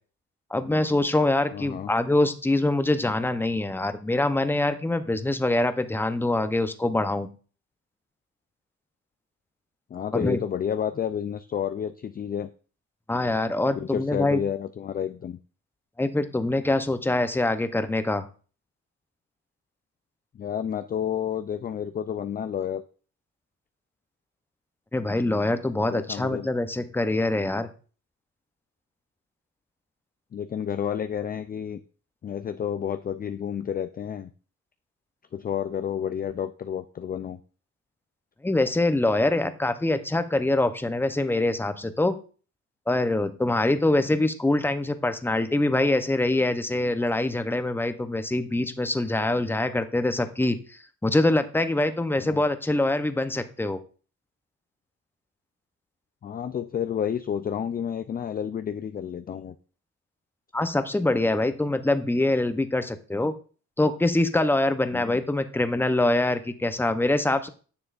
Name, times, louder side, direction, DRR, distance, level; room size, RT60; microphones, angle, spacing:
voice 1, 0.5-7.3 10.1-10.4 13.1-14.4 16.0-18.3 24.9-27.7 38.4-42.2 42.9-53.8 60.5-63.3 63.8-67.5, left 2 dB, 5° left, 9 dB, 0.7 m, -24 dB
voice 2, 1.5-1.9 9.9-12.5 13.8-15.4 20.3-22.8 25.8-26.5 30.3-31.8 32.2-34.3 35.3-37.4 52.2-52.4 56.2-59.5 64.9-65.2, left 8 dB, 30° left, 10 dB, 0.4 m, -30 dB
10.0 x 6.9 x 2.5 m, 0.38 s
cardioid pair, 90°, 30 cm